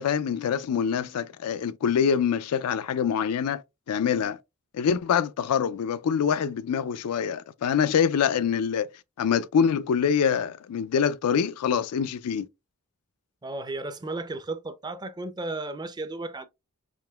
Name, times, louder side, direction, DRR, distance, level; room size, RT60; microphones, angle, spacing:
voice 1, 0.0-3.6 3.9-4.4 4.7-8.9 9.2-12.5, left 7 dB, 90° left, 0.4 m, -25 dB
voice 2, 13.4-16.5, right 2 dB, 20° right, 0.4 m, -34 dB
5.0 x 2.9 x 2.2 m
head